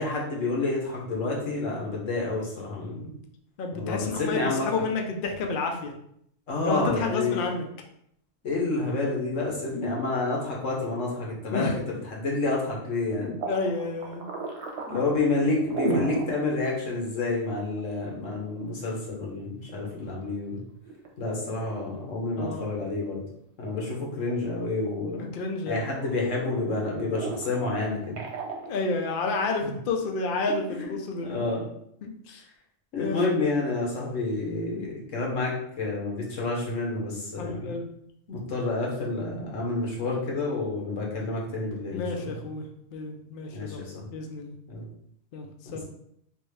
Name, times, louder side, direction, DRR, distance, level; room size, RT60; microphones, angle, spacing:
voice 1, 0.0-3.1 3.7-4.7 6.5-7.5 8.4-13.3 14.9-20.6 21.2-23.2 23.6-25.2 25.7-28.2 29.6-29.7 30.7-31.0 31.2-31.6 32.9-37.7 38.3-42.4 43.5-44.1 44.7-44.9 45.6-45.8, left 3 dB, 80° left, -2 dB, 1.3 m, -29 dB
voice 2, 3.6-5.9 6.6-7.7 11.5-11.8 13.2-14.3 15.8-16.0 22.4-22.7 25.2-25.8 28.7-31.3 32.0-32.4 32.9-33.2 37.4-37.9 41.9-42.7 42.9-43.8 44.1-44.6 45.3-45.5 45.7-45.8, left 3 dB, 60° left, 2 dB, 0.6 m, -30 dB
sound 1, 13.4-16.3 16.7-16.8 17.2-17.3 18.1-20.3 20.8-21.3 21.7-21.8 22.4-23.3 23.6-25.5 25.9-29.4, right 4 dB, 65° right, 0.9 m, -36 dB
3.6 x 2.5 x 3.2 m, 0.72 s
omnidirectional pair, 1.3 m